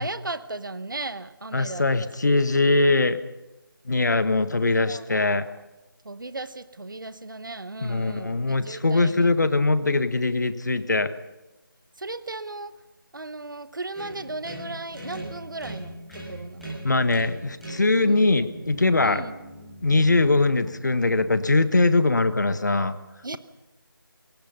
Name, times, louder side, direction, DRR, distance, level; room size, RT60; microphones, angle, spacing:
voice 1, 0.0-1.9 2.2-2.3 4.8-5.3 6.0-9.3 12.0-12.7 13.1-16.7 18.0-18.3 19.0-19.4 23.2-23.4, right 2 dB, 60° right, 13 dB, 1.0 m, -36 dB
voice 2, 1.5-3.2 3.9-5.5 7.8-11.1 16.8-19.2 19.8-23.0, left 3 dB, 55° left, 12 dB, 1.3 m, -21 dB
sound 1, 13.9-21.7, right 1 dB, ahead, 7.3 m, -41 dB
28.5 x 18.0 x 5.6 m, 1.0 s
figure-of-eight pair, 165°, 12 cm